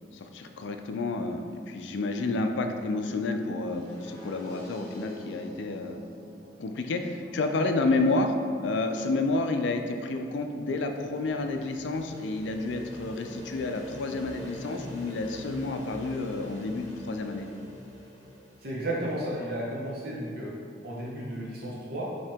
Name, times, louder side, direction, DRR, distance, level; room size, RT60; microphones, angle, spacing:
voice 1, 0.1-6.0 6.6-8.3 8.6-17.5, left 3 dB, 70° left, 5 dB, 0.4 m, -30 dB
sound 1, 3.7-9.6, left 1 dB, 5° left, 1.4 m, -48 dB
sound 2, 10.6-19.1, left 1 dB, 20° left, 1.0 m, -44 dB
voice 2, 18.6-20.5 20.8-22.1, right 1 dB, 50° right, -5 dB, 0.7 m, -33 dB
5.4 x 2.9 x 3.4 m, 2.2 s
head